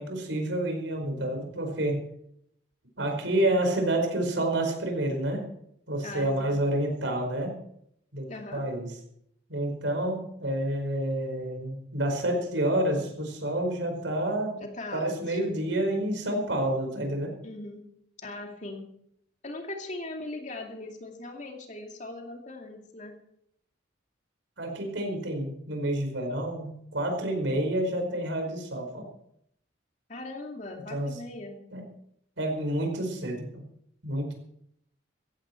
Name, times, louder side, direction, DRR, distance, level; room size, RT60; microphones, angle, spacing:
voice 1, 0.0-2.0 3.0-5.4 5.9-7.5 8.1-8.9 9.5-14.6 14.9-17.3 24.6-29.1 30.9-31.2 31.7-31.8 32.4-33.6 34.0-34.3, right 1 dB, 75° right, 3 dB, 5.0 m, -29 dB
voice 2, 6.0-6.6 8.3-8.7 14.6-15.4 17.4-17.8 18.2-18.9 19.4-23.2 30.1-31.6, left 2 dB, 40° left, 2 dB, 2.5 m, -39 dB
16.5 x 15.5 x 4.5 m, 0.72 s
head